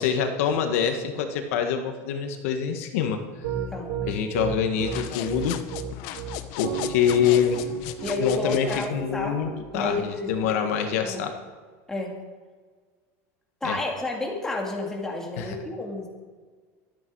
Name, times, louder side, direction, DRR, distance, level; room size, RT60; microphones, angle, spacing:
voice 1, 0.0-3.2 4.1-5.6 6.6-7.6 8.2-11.3 13.6-13.8 15.4-15.6, left 8 dB, 75° left, 6 dB, 1.7 m, -25 dB
Piano, 3.4-9.9, right 8 dB, 80° right, 5.3 m, -32 dB
sound 1, 4.8-8.9, left 11 dB, 55° left, 0.9 m, -36 dB
voice 2, 8.0-9.4 9.7-10.5 10.9-11.3 11.9-12.1 13.6-16.1, left 2 dB, 5° left, -1 dB, 2.2 m, -30 dB
23.5 x 8.9 x 4.8 m, 1.5 s
cardioid pair, 175°, 8 cm